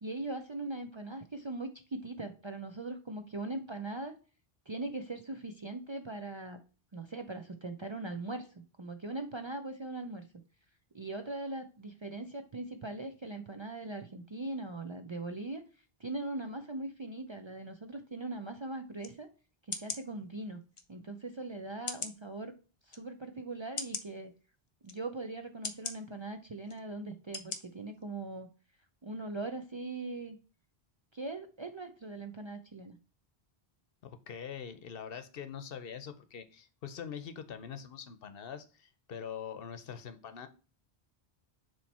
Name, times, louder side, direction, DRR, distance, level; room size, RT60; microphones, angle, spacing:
voice 1, 0.0-4.1 4.7-6.6 6.9-10.3 10.9-15.6 16.0-19.3 19.6-20.6 20.9-22.5 22.8-24.3 24.8-28.5 29.0-30.4 31.1-33.0, right 2 dB, 35° right, 6 dB, 0.5 m, -40 dB
sound 1, 19.0-19.1 19.7-20.0 20.8-20.9 21.9-22.2 22.9-23.0 23.8-24.1 24.8-25.0 25.6-26.0 26.7-26.8 27.3-27.6 28.0-28.1, left 4 dB, 35° left, 0.7 m, -38 dB
voice 2, 34.0-40.5, left 7 dB, 65° left, 10 dB, 0.9 m, -43 dB
7.2 x 3.2 x 4.2 m, 0.36 s
omnidirectional pair, 1.0 m